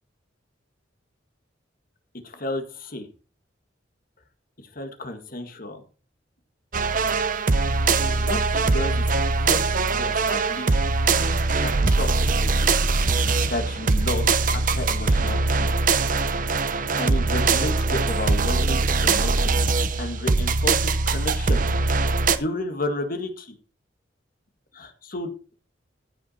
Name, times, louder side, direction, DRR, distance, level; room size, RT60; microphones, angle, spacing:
voice 1, 2.2-3.1 4.8-5.8 7.6-10.9 11.6-12.4 13.5-15.7 16.7-21.6 22.3-23.5 24.7-25.3, left 1 dB, 50° left, 7 dB, 1.8 m, -32 dB
sound 1, 6.7-22.4, right 3 dB, 45° right, 0.8 m, -22 dB
15.0 x 6.2 x 4.3 m, 0.37 s
head